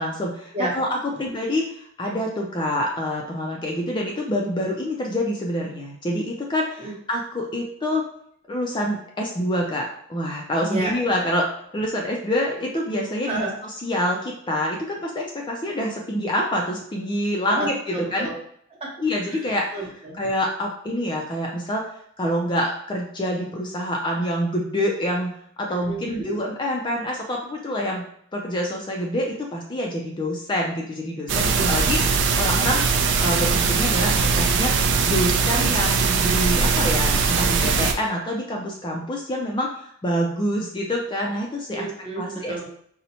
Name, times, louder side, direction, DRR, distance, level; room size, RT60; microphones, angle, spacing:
voice 1, 0.0-1.7 2.0-8.0 8.5-11.5 11.7-13.5 13.8-18.3 19.0-19.6 20.2-21.9 22.2-28.0 28.3-32.0 32.3-32.8 33.2-41.9 42.2-42.5, equal, 20° left, 0 dB, 0.4 m, -26 dB
voice 2, 17.5-18.3 18.8-18.9 19.3-19.5 19.7-20.2 25.7-26.4 31.5-31.9 41.7-42.7, right 2 dB, 30° right, -3 dB, 0.8 m, -31 dB
sound 1, 31.3-37.9, right 5 dB, 55° right, 0.4 m, -21 dB
4.1 x 2.1 x 2.8 m, 0.66 s
head